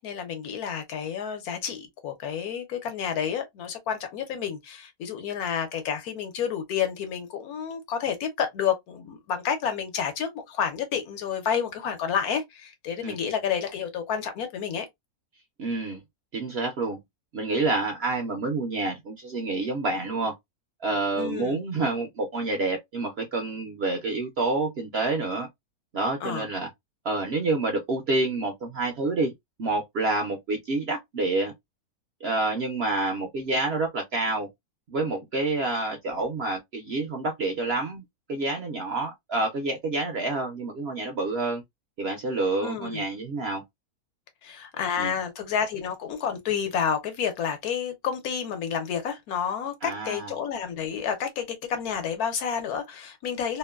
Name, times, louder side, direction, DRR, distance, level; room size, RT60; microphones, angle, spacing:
voice 1, 0.0-14.9 21.1-21.6 26.2-26.5 42.6-43.0 44.4-53.6, left 7 dB, 75° left, 1.2 m, -30 dB
voice 2, 15.6-16.0 16.3-17.0 17.3-20.3 20.8-25.5 25.9-26.7 27.0-29.3 29.6-31.5 32.2-34.5 34.9-38.0 38.3-41.6 42.0-43.6 45.0-45.1 49.8-50.3, right 3 dB, 60° right, 0.7 m, -28 dB
2.9 x 2.2 x 2.2 m
omnidirectional pair, 1.6 m